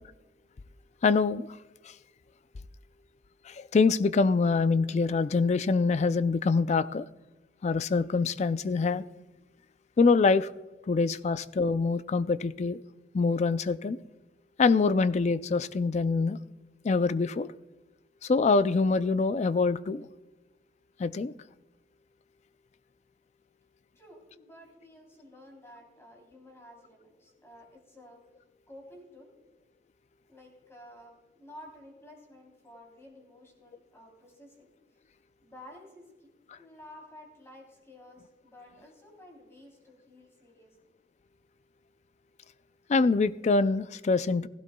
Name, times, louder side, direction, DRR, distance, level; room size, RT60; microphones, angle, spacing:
voice 1, 1.0-1.5 3.5-7.1 7.6-9.0 10.0-10.5 10.9-12.8 13.1-14.0 14.6-16.4 16.8-17.5 18.2-20.1 21.0-21.3 42.9-44.5, left 4 dB, 40° left, 15 dB, 0.4 m, -25 dB
voice 2, 23.9-28.2 28.7-29.3 30.3-34.7 35.4-36.3 36.6-40.8, left 1 dB, 15° left, 0 dB, 3.3 m, -52 dB
16.5 x 15.5 x 2.3 m, 1.1 s
head